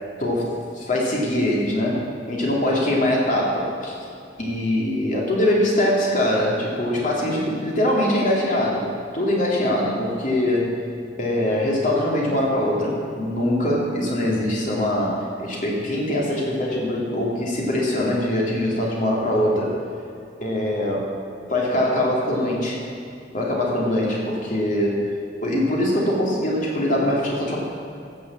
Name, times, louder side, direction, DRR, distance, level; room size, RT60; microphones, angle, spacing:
voice 1, 0.7-2.0 2.3-4.0 4.4-8.8 9.1-10.7 11.2-19.7 20.4-21.1 21.5-22.8 23.3-25.0 25.4-27.6, left 1 dB, 45° left, -3 dB, 2.8 m, -22 dB
15.5 x 6.6 x 7.4 m, 2.4 s
head